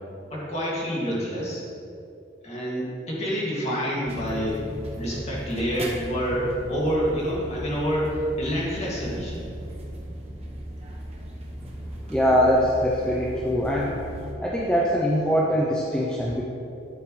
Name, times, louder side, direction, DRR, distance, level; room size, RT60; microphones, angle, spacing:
voice 1, 0.3-1.6 2.4-4.7 5.0-9.4, equal, 35° left, -6 dB, 2.3 m, -27 dB
sound 1, 4.0-14.3, right 1 dB, 30° right, 1.1 m, -37 dB
voice 2, 12.1-14.0 14.4-16.4, equal, 5° left, -4 dB, 0.6 m, -22 dB
11.0 x 8.2 x 3.3 m, 2.7 s
head